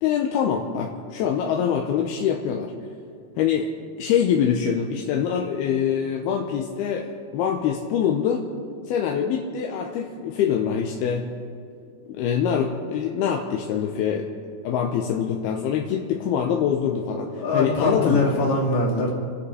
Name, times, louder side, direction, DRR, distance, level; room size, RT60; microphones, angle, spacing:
voice 1, 0.0-2.7 3.4-3.7 4.0-8.4 8.9-11.3 12.1-14.3 14.6-18.3, left 8 dB, 80° left, 2 dB, 2.8 m, -24 dB
voice 2, 17.3-19.1, left 2 dB, 60° left, -2 dB, 4.3 m, -22 dB
28.0 x 10.5 x 5.0 m, 2.4 s
omnidirectional pair, 4.7 m